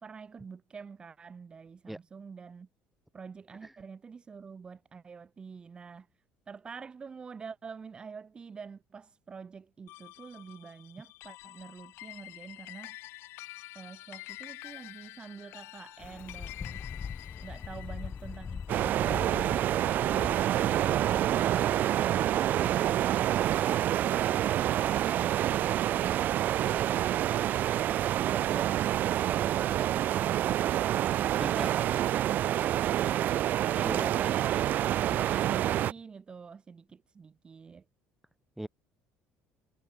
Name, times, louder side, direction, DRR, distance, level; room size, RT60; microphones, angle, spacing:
voice 1, 0.0-2.7 3.1-6.1 6.5-13.0 13.7-16.8 17.4-19.6 33.7-37.8, right 5 dB, 20° right, 1.3 m, -46 dB
sound 1, 9.9-20.5, left 19 dB, 65° left, 3.2 m, -48 dB
sound 2, 16.0-23.6, left 6 dB, 25° left, 3.4 m, -43 dB
sound 3, 18.7-35.9, right 12 dB, 40° right, 0.3 m, -27 dB
voice 2, 31.4-31.9 33.8-34.1 38.6-38.7, right 1 dB, 5° right, 0.6 m, -38 dB
cardioid pair, 155°, 4 cm